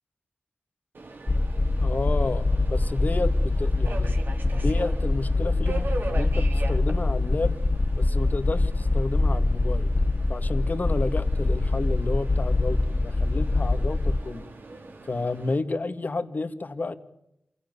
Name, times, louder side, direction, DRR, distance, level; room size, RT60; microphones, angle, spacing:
Subway metro underground, 0.9-15.6, right 3 dB, 70° right, 4.3 m, -41 dB
sound 1, 1.3-14.2, left 2 dB, 35° left, 0.9 m, -24 dB
voice 1, 1.8-4.1 4.5-7.6 8.0-9.9 10.3-14.5 15.1-17.0, left 3 dB, 50° left, 9 dB, 2.2 m, -31 dB
28.0 x 16.5 x 9.7 m, 0.82 s
cardioid pair, 55°, 4 cm